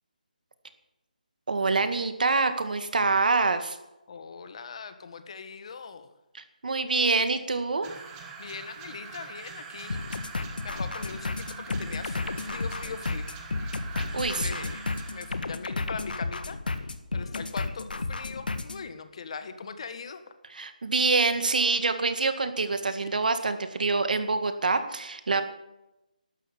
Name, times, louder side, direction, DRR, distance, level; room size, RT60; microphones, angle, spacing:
voice 1, 1.5-3.8 6.3-7.9 14.0-14.7 20.5-25.4, right 3 dB, 65° right, 9 dB, 2.0 m, -26 dB
voice 2, 4.1-6.1 8.4-10.0 10.6-13.3 14.1-16.6 17.1-20.2, left 5 dB, 40° left, 10 dB, 1.5 m, -41 dB
sound 1, 7.8-15.4, right 5 dB, 10° right, 1.4 m, -44 dB
sound 2, 9.9-18.8, left 3 dB, 80° left, 1.6 m, -32 dB
12.5 x 11.5 x 8.3 m, 0.94 s
hypercardioid pair, 170°, 5 cm